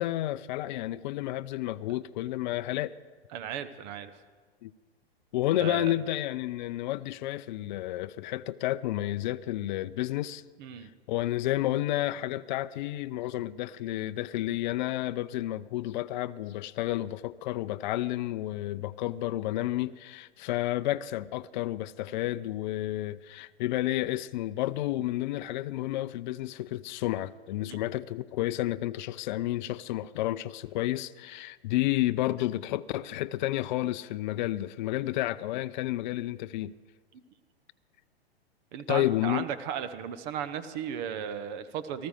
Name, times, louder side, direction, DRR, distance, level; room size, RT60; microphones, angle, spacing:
voice 1, 0.0-3.0 4.6-4.7 5.3-10.4 11.1-36.7 38.9-39.4, left 15 dB, 50° left, 13 dB, 0.5 m, -31 dB
voice 2, 3.3-4.1 5.5-5.9 10.6-10.9 27.7-27.8 38.7-42.1, right 8 dB, 45° right, 12 dB, 1.1 m, -35 dB
19.0 x 14.0 x 5.0 m, 1.5 s
hypercardioid pair, 110°, 31 cm